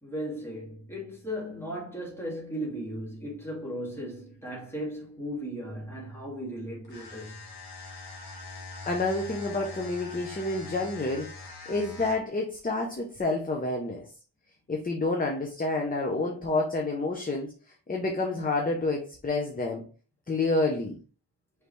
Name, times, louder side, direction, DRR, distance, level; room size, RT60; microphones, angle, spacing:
voice 1, 0.0-7.4, equal, 5° left, 2.2 m, -36 dB
sound 1, 6.8-12.4, left 3 dB, 60° left, 1.4 m, -43 dB
voice 2, 8.9-11.3 11.7-14.1 14.7-17.5 17.9-19.9 20.3-21.0, left 2 dB, 20° left, 0.6 m, -29 dB
5.3 x 3.2 x 3.0 m
wide cardioid pair, 180°, 42 cm